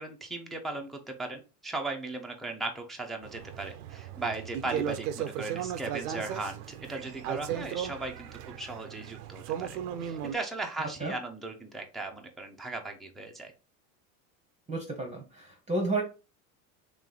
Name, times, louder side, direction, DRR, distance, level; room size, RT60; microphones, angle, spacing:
voice 1, 0.0-13.5, right 2 dB, ahead, 1 dB, 0.5 m, -37 dB
sound 1, 3.2-10.4, right 9 dB, 90° right, 0.6 m, -36 dB
voice 2, 14.7-16.0, right 2 dB, 15° right, 2 dB, 0.8 m, -31 dB
3.1 x 3.1 x 3.8 m, 0.32 s
supercardioid pair, 110°, 46 cm